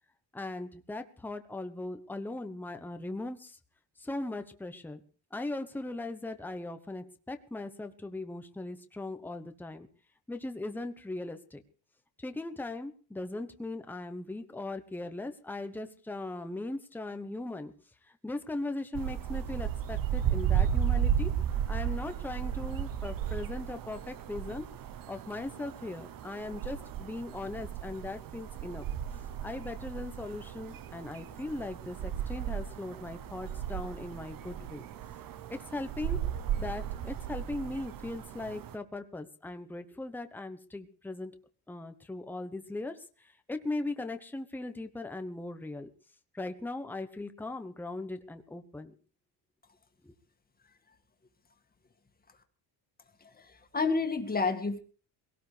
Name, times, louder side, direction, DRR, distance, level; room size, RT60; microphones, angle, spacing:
voice 1, 0.3-3.6 4.0-5.0 5.3-9.9 10.3-11.6 12.2-17.7 18.0-21.3 21.7-24.7 25.1-28.9 29.4-34.8 35.5-36.2 36.6-41.3 41.7-45.9 46.3-48.9 50.0-50.1, left 2 dB, 5° left, 8 dB, 1.0 m, -39 dB
sound 1, 18.9-38.8, right 9 dB, 45° right, 0.9 m, -34 dB
voice 2, 53.2-54.8, left 4 dB, 20° left, 6 dB, 2.0 m, -30 dB
22.0 x 17.5 x 3.4 m, 0.40 s
cardioid pair, 130°, 46 cm